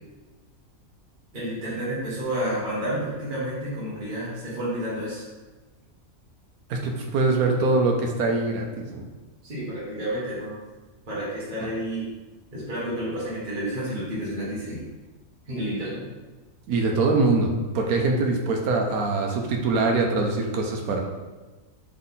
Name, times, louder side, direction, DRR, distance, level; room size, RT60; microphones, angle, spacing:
voice 1, 1.3-5.2 9.4-10.5 11.1-12.1 12.5-14.9 15.5-16.0, right 1 dB, 40° right, -8 dB, 1.3 m, -30 dB
voice 2, 6.7-9.1 16.7-21.0, right 3 dB, 85° right, 2 dB, 1.1 m, -23 dB
3.7 x 3.6 x 3.9 m, 1.2 s
omnidirectional pair, 1.5 m